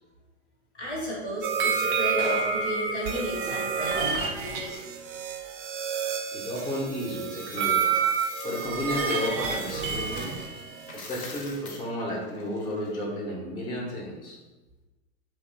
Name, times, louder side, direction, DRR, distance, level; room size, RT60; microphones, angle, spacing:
voice 1, 0.8-4.7, equal, 90° left, -5 dB, 1.2 m, -33 dB
sound 1, 1.4-11.0, right 6 dB, 45° right, 0.4 m, -29 dB
voice 2, 6.3-7.9 8.4-10.3 10.9-14.4, left 1 dB, 15° left, -1 dB, 0.4 m, -32 dB
Coin (dropping), 7.6-10.4 10.8-13.0, left 3 dB, 75° left, 0.6 m, -45 dB
2.8 x 2.1 x 2.5 m, 1.2 s
figure-of-eight pair, 95°, 34 cm